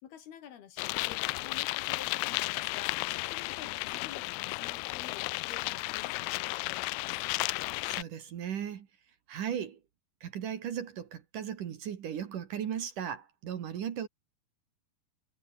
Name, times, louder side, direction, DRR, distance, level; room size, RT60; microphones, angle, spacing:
voice 1, 0.0-7.2, left 9 dB, 65° left, 4.0 m, -50 dB
sound 1, 0.8-8.0, left 24 dB, 90° left, 2.7 m, -34 dB
voice 2, 7.8-8.9 9.3-9.8 10.2-14.1, right 9 dB, 55° right, 3.0 m, -37 dB
omnidirectional pair, 4.8 m